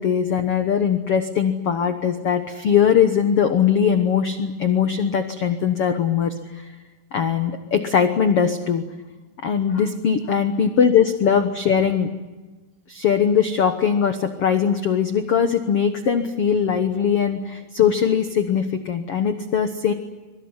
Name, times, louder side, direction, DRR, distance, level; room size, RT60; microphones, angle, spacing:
voice 1, 0.0-6.7 7.1-8.8 9.4-12.1 12.9-19.9, left 7 dB, 80° left, 8 dB, 1.3 m, -20 dB
25.0 x 22.5 x 9.7 m, 1.2 s
omnidirectional pair, 4.7 m